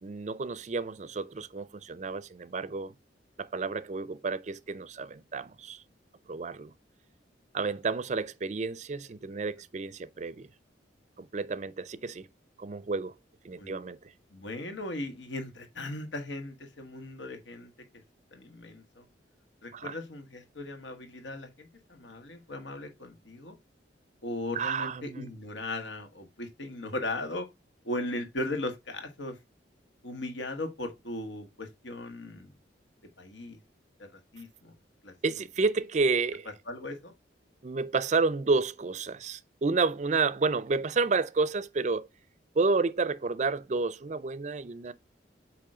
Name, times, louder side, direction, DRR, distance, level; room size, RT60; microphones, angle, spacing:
voice 1, 0.0-2.9 3.4-5.8 6.3-6.7 7.5-10.5 11.2-12.3 12.6-13.1 13.4-14.0 19.7-20.0 24.5-25.3 35.2-36.5 37.6-42.1 42.5-44.9, right 4 dB, 40° right, 0.4 m, -30 dB
voice 2, 14.3-17.7 18.3-19.0 19.6-23.6 24.2-27.5 27.8-29.3 30.0-32.5 33.2-33.6 34.0-34.1 34.3-34.7 35.0-35.1 36.7-37.1, left 1 dB, 85° left, 1.6 m, -37 dB
8.5 x 3.1 x 4.9 m
head